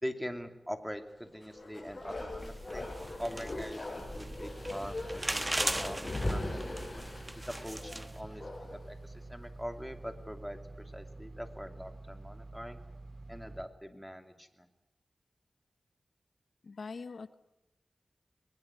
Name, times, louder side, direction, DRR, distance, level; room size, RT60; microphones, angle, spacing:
voice 1, 0.0-2.8 3.2-6.7 7.3-12.8 13.3-14.7, equal, ahead, 7 dB, 2.7 m, -43 dB
Bark, 1.3-8.9 9.2-9.3, left 1 dB, 30° left, 6.7 m, -40 dB
sound 1, 2.4-8.2, right 1 dB, 15° right, 1.3 m, -38 dB
sound 2, 4.0-13.7, right 2 dB, 50° right, 1.9 m, -48 dB
voice 2, 16.6-17.4, left 4 dB, 80° left, 12 dB, 1.0 m, -43 dB
21.5 x 20.0 x 9.8 m, 0.93 s
wide cardioid pair, 75°, 0 cm